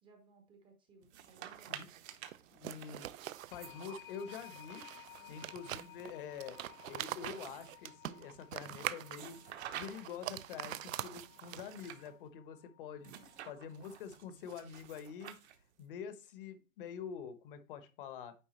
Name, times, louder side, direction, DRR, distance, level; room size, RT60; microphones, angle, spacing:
voice 1, 0.0-2.1 5.2-5.5 13.2-13.4, right 3 dB, 10° right, 5 dB, 0.7 m, -64 dB
sound 1, 1.0-4.5 5.0-7.9 9.1-10.3 11.0-12.1 13.0-15.8, right 10 dB, 55° right, 0.9 m, -51 dB
sound 2, 1.4-11.9, right 13 dB, 70° right, 0.5 m, -45 dB
voice 2, 2.5-3.1 3.5-4.8 5.3-6.6 6.9-13.1 13.5-15.3 15.8-18.3, left 7 dB, 40° left, 11 dB, 0.9 m, -46 dB
sound 3, 3.5-14.1, left 17 dB, 80° left, 0.6 m, -58 dB
9.2 x 3.6 x 3.0 m, 0.32 s
hypercardioid pair, 145°, 41 cm